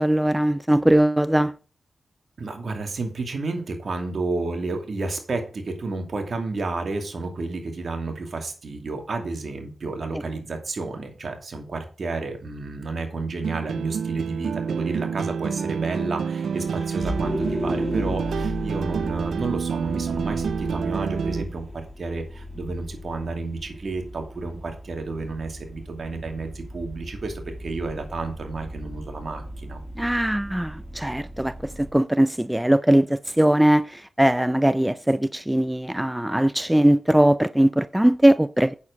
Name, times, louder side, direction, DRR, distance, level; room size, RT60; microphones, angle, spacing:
voice 1, 0.0-1.5 10.1-10.2 30.0-38.7, right 1 dB, 10° right, 0.5 m, -20 dB
voice 2, 2.4-29.8, right 3 dB, 65° right, 2.6 m, -31 dB
sound 1, 13.4-21.4, right 6 dB, 85° right, 0.4 m, -28 dB
Vehicle, 16.4-31.9, equal, 15° left, 2.1 m, -35 dB
8.5 x 7.3 x 5.2 m
cardioid pair, 45°, 0 cm